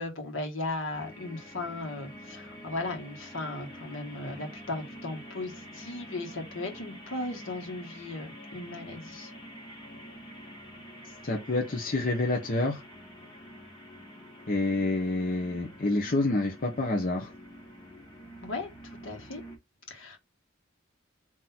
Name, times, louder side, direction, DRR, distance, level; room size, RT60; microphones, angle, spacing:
voice 1, 0.0-9.3 18.4-19.4 19.9-20.2, left 2 dB, 70° left, 1.6 m, -37 dB
sound 1, 0.9-19.6, equal, 20° left, 1.6 m, -47 dB
voice 2, 11.2-12.8 14.5-17.3, left 2 dB, 45° left, 0.9 m, -28 dB
3.9 x 2.9 x 4.3 m
head